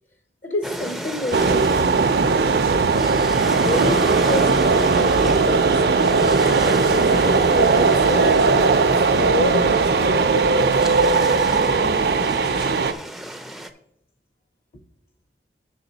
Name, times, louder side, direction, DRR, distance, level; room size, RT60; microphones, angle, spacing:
voice 1, 0.4-1.7 2.3-2.7 3.5-6.1 6.6-8.8 9.2-10.8 11.1-12.5, left 2 dB, 45° left, 5 dB, 0.6 m, -30 dB
sound 1, 0.6-13.7, equal, ahead, 0.4 m, -33 dB
sound 2, 1.3-12.9, right 4 dB, 60° right, 0.4 m, -18 dB
7.9 x 6.6 x 4.0 m, 0.77 s
head